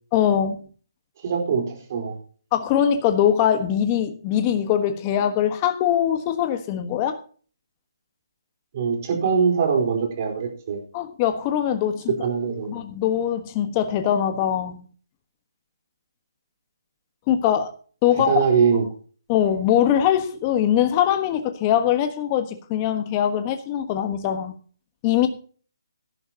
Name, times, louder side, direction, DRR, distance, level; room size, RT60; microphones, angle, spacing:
voice 1, 0.1-0.6 2.5-7.2 10.9-12.1 12.7-14.8 17.3-17.7 18.0-18.3 19.3-24.5 25.0-25.3, left 10 dB, 25° left, 1.4 m, -22 dB
voice 2, 1.2-2.2 8.7-10.8 12.1-12.7 18.1-18.8, right 6 dB, 40° right, 4.0 m, -22 dB
17.5 x 10.5 x 2.9 m
hypercardioid pair, 160°, 2 cm